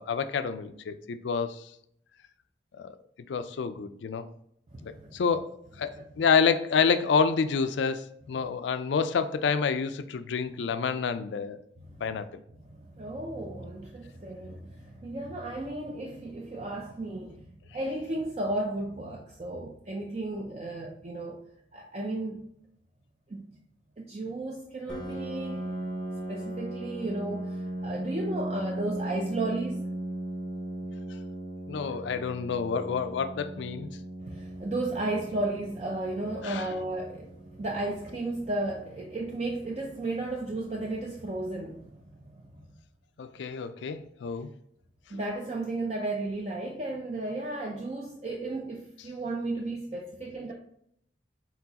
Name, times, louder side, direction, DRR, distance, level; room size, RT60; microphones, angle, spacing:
voice 1, 0.0-1.6 2.8-2.9 3.3-4.3 4.8-5.5 5.8-5.9 6.2-11.6 12.0-12.3 31.7-33.9 36.4-36.7 43.2-44.5, left 6 dB, 80° left, 11 dB, 0.4 m, -28 dB
voice 2, 4.7-5.2 5.9-6.1 12.7-17.4 17.7-21.4 21.7-22.4 23.3-23.4 24.0-25.7 26.3-29.9 34.2-42.3 45.1-50.5, right 2 dB, 35° right, 0 dB, 0.4 m, -34 dB
Piano, 24.9-40.3, right 1 dB, 25° left, 0.5 m, -38 dB
4.5 x 3.9 x 2.8 m, 0.71 s
head